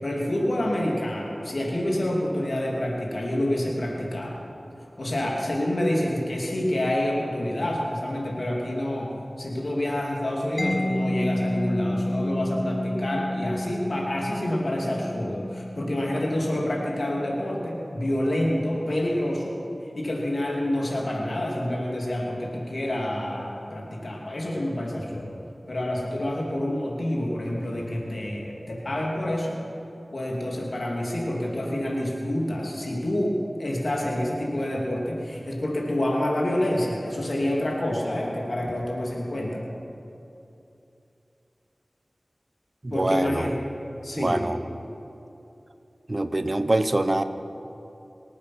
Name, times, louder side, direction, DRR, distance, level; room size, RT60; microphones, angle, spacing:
voice 1, 0.0-4.4 5.0-19.6 20.0-25.3 25.7-29.6 30.1-39.6 42.9-43.6 44.0-44.4, left 1 dB, 70° left, -2 dB, 2.8 m, -27 dB
Mallet percussion, 10.6-18.1, left 1 dB, 40° left, 1.3 m, -31 dB
voice 2, 42.8-43.5 44.2-44.6 46.1-47.2, right 2 dB, 50° right, 10 dB, 0.9 m, -24 dB
25.5 x 8.7 x 6.3 m, 2.9 s
wide cardioid pair, 40°, 0 cm